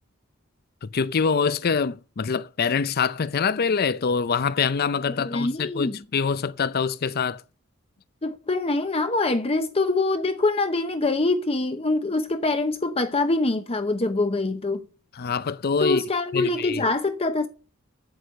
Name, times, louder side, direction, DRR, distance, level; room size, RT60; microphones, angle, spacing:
voice 1, 0.8-7.4 15.2-16.0 16.3-16.8, left 5 dB, 45° left, 0.5 m, -25 dB
voice 2, 5.2-6.0 8.2-14.9 15.8-17.5, left 2 dB, 30° left, 0.8 m, -24 dB
8.5 x 7.9 x 6.5 m
head